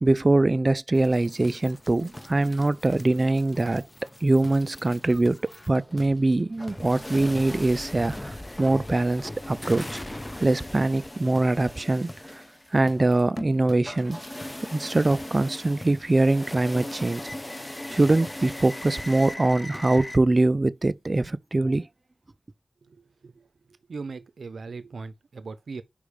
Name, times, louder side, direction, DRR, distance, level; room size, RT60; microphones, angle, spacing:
voice 1, 0.0-3.8 4.2-5.4 5.7-10.0 10.4-12.4 12.7-14.2 14.7-17.2 17.9-21.9, right 2 dB, 35° right, 0.4 m, -23 dB
sound 1, 0.9-20.2, left 1 dB, 15° left, 0.6 m, -39 dB
voice 2, 22.9-23.5 23.9-25.8, right 4 dB, 85° right, 0.5 m, -39 dB
5.1 x 5.0 x 4.8 m
wide cardioid pair, 90°, 0 cm